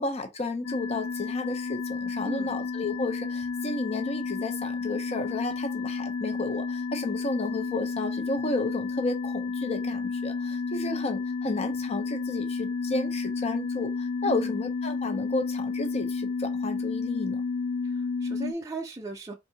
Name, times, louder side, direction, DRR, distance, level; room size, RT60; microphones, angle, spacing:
voice 1, 0.0-17.4, left 2 dB, 35° left, 0.7 m, -32 dB
sound 1, 0.6-18.5, left 4 dB, 80° left, 0.4 m, -31 dB
voice 2, 2.2-2.6 14.2-14.6 17.8-19.4, right 2 dB, 15° right, 0.6 m, -37 dB
3.6 x 2.7 x 3.9 m
head